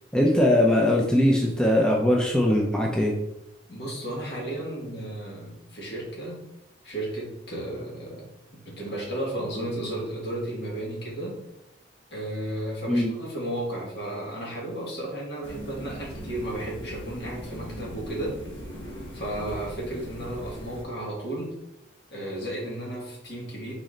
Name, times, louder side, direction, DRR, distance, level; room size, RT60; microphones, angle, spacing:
voice 1, 0.1-3.1 12.9-13.1, left 1 dB, 5° left, -1 dB, 0.4 m, -21 dB
voice 2, 3.7-6.4 6.8-8.2 8.5-11.4 12.1-18.4 19.1-21.6 22.1-23.7, right 1 dB, 60° left, -3 dB, 1.5 m, -33 dB
sound 1, 15.4-20.8, equal, 80° left, 1.1 m, -39 dB
4.0 x 3.2 x 3.7 m, 0.87 s
head